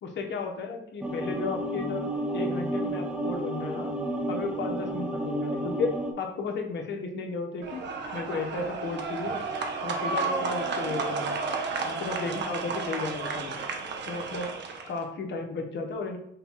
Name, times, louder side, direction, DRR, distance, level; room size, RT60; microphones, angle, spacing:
voice 1, 0.0-2.1 2.3-3.9 4.3-5.9 6.2-7.8 8.1-9.4 9.8-11.4 11.8-13.6 14.1-14.5 14.9-16.2, left 4 dB, 65° left, 3 dB, 1.0 m, -34 dB
sound 1, 1.0-6.1, right 1 dB, 5° right, 0.8 m, -31 dB
sound 2, 7.6-15.0, right 4 dB, 60° right, 0.7 m, -32 dB
5.4 x 2.3 x 4.1 m, 0.73 s
cardioid pair, 90°, 20 cm